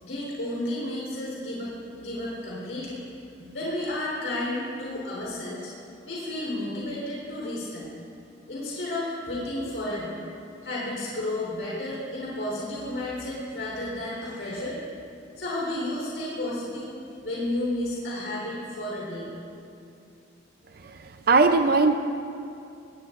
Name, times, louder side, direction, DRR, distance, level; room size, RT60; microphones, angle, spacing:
voice 1, 0.0-1.7 2.0-3.0 3.4-5.7 6.1-7.9 8.5-10.1 10.6-14.8 15.4-16.9 17.2-19.3, left 1 dB, 80° left, -6 dB, 4.0 m, -32 dB
voice 2, 21.3-21.9, right 3 dB, 55° right, 6 dB, 0.6 m, -19 dB
22.0 x 20.0 x 2.6 m, 2.5 s
head